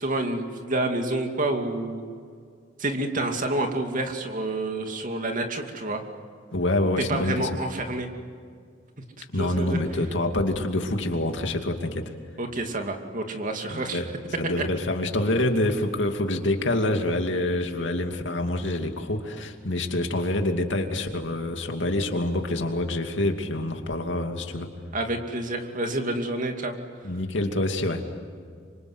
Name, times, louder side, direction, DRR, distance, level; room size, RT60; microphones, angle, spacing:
voice 1, 0.0-2.0 2.8-6.0 7.1-8.1 9.4-9.8 12.4-14.0 14.6-14.7 24.9-26.8, right 2 dB, 45° right, 4 dB, 2.5 m, -28 dB
voice 2, 6.5-7.6 9.3-12.1 13.7-14.1 14.4-24.7 27.0-28.0, left 1 dB, 70° left, 4 dB, 2.6 m, -26 dB
26.5 x 25.5 x 8.1 m, 2.1 s
head